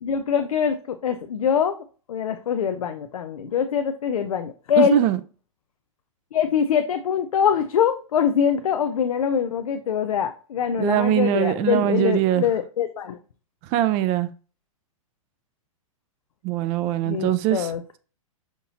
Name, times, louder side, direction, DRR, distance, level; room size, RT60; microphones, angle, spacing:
voice 1, 0.0-1.8 2.1-5.0 6.3-13.2 17.1-18.0, left 8 dB, 90° left, 0.4 m, -23 dB
voice 2, 4.8-5.2 10.8-12.4 13.7-14.3 16.4-17.7, right 12 dB, 35° right, 0.4 m, -22 dB
5.7 x 2.7 x 2.8 m
hypercardioid pair, 125°, 18 cm